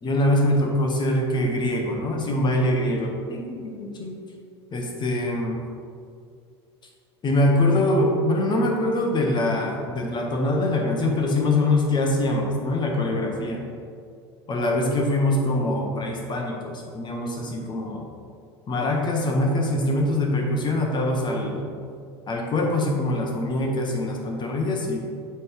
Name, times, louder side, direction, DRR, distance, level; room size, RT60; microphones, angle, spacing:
voice 1, 0.0-4.2 4.7-5.6 7.2-13.6 14.5-18.1 18.7-21.7 22.3-25.0, left 1 dB, 30° left, 1 dB, 1.3 m, -23 dB
7.7 x 3.6 x 4.8 m, 2.2 s
hypercardioid pair, 80°, 14 cm